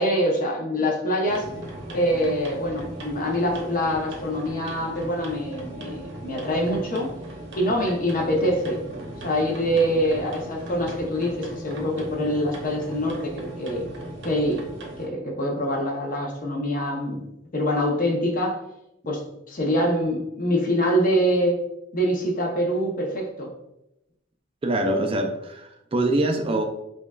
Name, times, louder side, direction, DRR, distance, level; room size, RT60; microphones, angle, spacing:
voice 1, 0.0-1.5 1.9-7.1 7.6-8.8 9.2-13.8 14.2-14.6 15.0-17.2 17.5-18.6 19.1-19.2 19.5-21.6 21.9-23.5, equal, 45° left, 0 dB, 0.8 m, -24 dB
sound 1, 1.2-15.1, right 1 dB, 65° right, 0.8 m, -38 dB
voice 2, 24.6-26.6, right 1 dB, 30° right, 5 dB, 0.4 m, -24 dB
5.0 x 2.3 x 2.3 m, 0.86 s
head